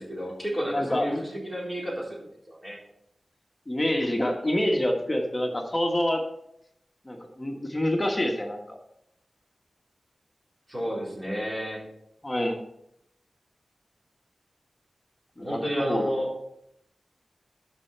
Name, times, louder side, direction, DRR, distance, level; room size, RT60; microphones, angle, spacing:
voice 1, 0.0-2.8 10.7-11.8 15.4-16.3, equal, 25° right, -4 dB, 4.0 m, -31 dB
voice 2, 0.7-1.2 3.7-6.2 7.0-8.8 12.2-12.6 15.4-16.1, left 1 dB, 20° left, 2 dB, 1.3 m, -27 dB
12.5 x 5.5 x 4.4 m, 0.78 s
wide cardioid pair, 90°, 0 cm